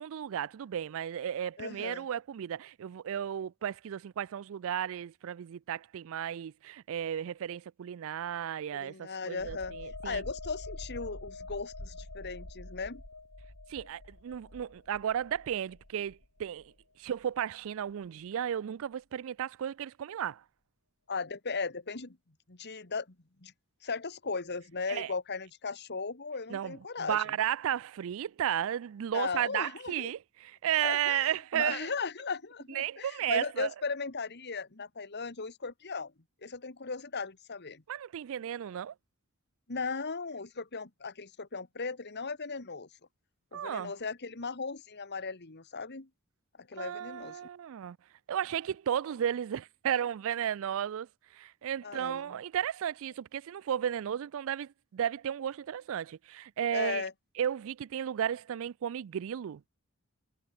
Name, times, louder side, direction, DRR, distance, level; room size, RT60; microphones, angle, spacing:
voice 1, 0.0-10.2 13.7-16.7 17.0-20.4 24.9-25.1 26.5-31.9 32.7-33.7 37.9-38.9 43.5-43.9 46.7-48.0 48.3-51.1 51.3-57.0 57.4-59.6, right 9 dB, 65° right, 0.4 m, -34 dB
voice 2, 1.6-2.1 8.7-9.7 10.0-13.0 21.1-22.2 22.5-23.2 23.4-23.5 23.8-27.2 29.1-30.1 30.8-36.1 36.4-37.8 39.7-42.9 43.5-46.1 46.6-47.4 51.8-52.4 56.7-57.1, left 4 dB, 50° left, 1.8 m, -37 dB
sound 1, 9.4-16.8 17.2-17.4, left 2 dB, 80° left, 3.6 m, -45 dB
head